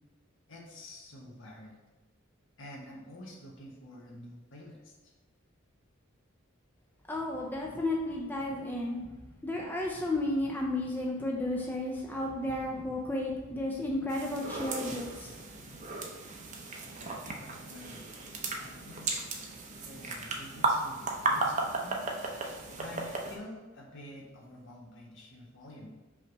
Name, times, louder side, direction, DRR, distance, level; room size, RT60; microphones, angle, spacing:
voice 1, 0.5-1.8 2.6-5.1 17.3-18.1 18.5-19.2 19.8-22.1 22.8-25.9, left 1 dB, 65° left, -2 dB, 1.4 m, -48 dB
voice 2, 7.1-9.1 9.4-15.3, left 1 dB, 10° left, -2 dB, 0.6 m, -33 dB
sound 1, 14.1-23.4, right 3 dB, 35° right, 0.7 m, -35 dB
5.5 x 3.2 x 5.3 m, 1.2 s
head